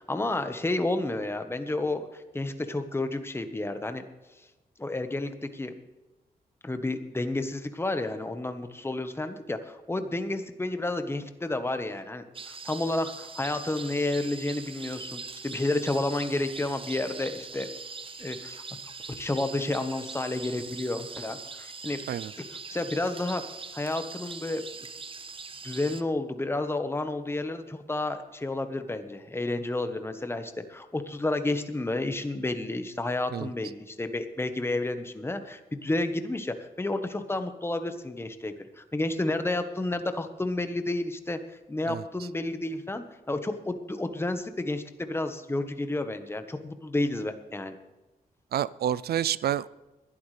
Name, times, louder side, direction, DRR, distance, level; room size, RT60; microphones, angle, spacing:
voice 1, 0.0-4.0 4.8-5.7 6.6-17.7 18.2-18.6 19.2-22.0 22.7-23.4 23.7-24.6 25.6-41.4 41.7-47.7, left 2 dB, 15° left, 8 dB, 1.2 m, -31 dB
sound 1, 12.3-26.0, right 4 dB, 35° right, 0.8 m, -42 dB
voice 2, 41.9-42.3 48.5-49.7, right 10 dB, 85° right, 19 dB, 0.4 m, -29 dB
21.0 x 11.5 x 3.3 m, 1.1 s
wide cardioid pair, 100°, 16 cm